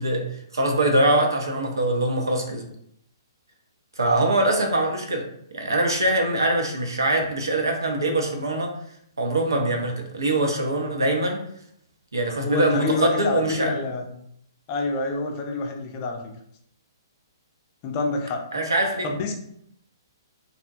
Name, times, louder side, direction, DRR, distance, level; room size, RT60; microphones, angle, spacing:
voice 1, 0.0-2.7 4.0-8.7 9.2-11.4 12.1-13.7 18.5-19.1, right 1 dB, 75° right, 2 dB, 0.6 m, -23 dB
voice 2, 12.4-14.1 14.7-16.2 17.8-18.4 19.0-19.4, left 3 dB, 30° left, 2 dB, 0.4 m, -27 dB
2.6 x 2.1 x 2.5 m, 0.71 s
figure-of-eight pair, 125°, 2 cm